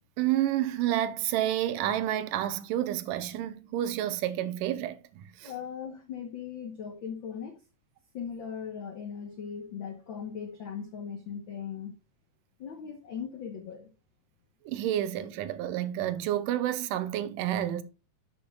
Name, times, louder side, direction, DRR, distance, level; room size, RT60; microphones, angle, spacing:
voice 1, 0.2-5.5 14.6-17.8, right 12 dB, 80° right, 2.3 m, -29 dB
voice 2, 5.4-7.6 8.1-11.9 12.6-13.9, left 7 dB, 90° left, 1.0 m, -39 dB
11.5 x 7.0 x 2.3 m
omnidirectional pair, 3.9 m